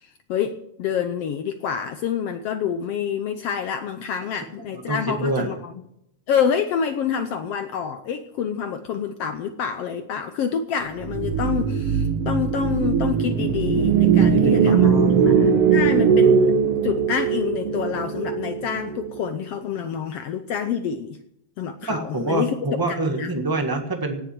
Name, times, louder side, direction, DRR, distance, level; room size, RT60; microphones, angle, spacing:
voice 1, 0.0-5.7 6.3-16.5 16.8-21.2 21.6-22.5 22.9-23.3, left 7 dB, 70° left, 9 dB, 1.5 m, -27 dB
voice 2, 4.7-5.5 14.3-15.5 21.9-24.2, right 2 dB, 30° right, 5 dB, 0.4 m, -26 dB
sound 1, 11.0-19.3, right 7 dB, 60° right, 1.7 m, -20 dB
18.0 x 7.3 x 7.6 m, 0.79 s
omnidirectional pair, 3.5 m